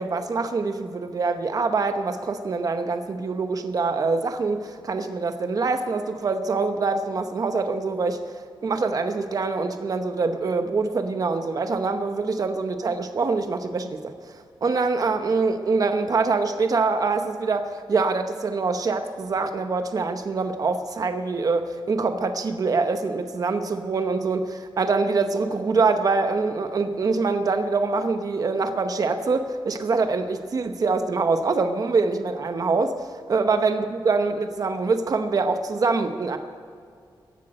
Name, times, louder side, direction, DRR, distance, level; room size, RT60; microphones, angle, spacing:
voice 1, 0.0-8.2 8.6-14.1 14.6-36.4, right 4 dB, 45° right, 8 dB, 0.9 m, -24 dB
15.5 x 10.5 x 7.7 m, 2.3 s
wide cardioid pair, 140°, 8 cm